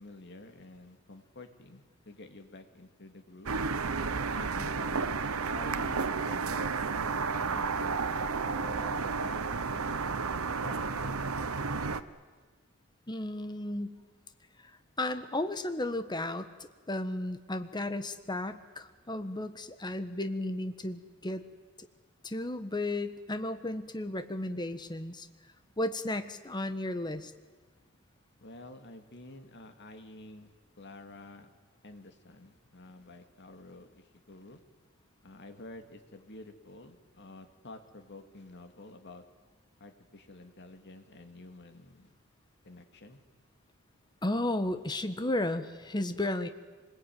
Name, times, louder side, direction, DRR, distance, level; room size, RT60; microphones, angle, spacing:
voice 1, 0.0-3.5 4.3-5.2 5.5-7.9 8.4-10.1 10.6-11.5 28.4-31.5 31.8-34.6 35.2-39.2 39.8-42.1 42.6-43.2, left 2 dB, 55° left, 6 dB, 2.4 m, -49 dB
sound 1, 3.5-12.0, right 4 dB, 90° right, 1.0 m, -32 dB
voice 2, 13.1-14.0 15.0-16.5 16.9-21.4 21.8-21.9 22.2-25.3 25.8-27.3 44.2-46.5, left 1 dB, 20° left, 9 dB, 1.3 m, -34 dB
25.5 x 21.0 x 9.4 m, 1.4 s
head